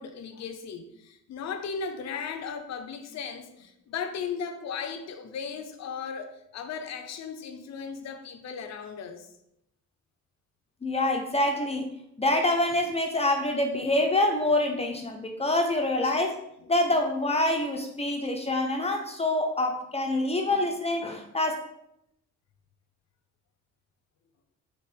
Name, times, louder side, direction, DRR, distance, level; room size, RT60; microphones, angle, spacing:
voice 1, 0.0-9.3 16.0-16.1 16.6-16.7, left 6 dB, 60° left, 7 dB, 0.6 m, -36 dB
voice 2, 10.8-11.9 12.2-16.4 16.7-21.6, left 1 dB, 20° left, 3 dB, 0.5 m, -26 dB
4.5 x 2.9 x 3.3 m, 0.79 s
cardioid pair, 90°, 30 cm